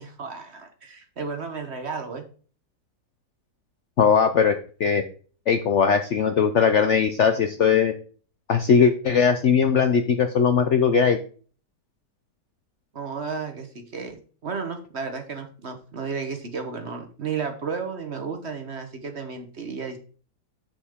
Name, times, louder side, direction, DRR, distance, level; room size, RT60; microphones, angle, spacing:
voice 1, 0.0-2.2 12.9-20.0, right 5 dB, 45° right, 7 dB, 1.2 m, -33 dB
voice 2, 4.0-5.0 5.5-7.9 8.5-11.2, left 6 dB, 60° left, 8 dB, 0.7 m, -19 dB
7.2 x 6.9 x 3.6 m, 0.41 s
omnidirectional pair, 1.8 m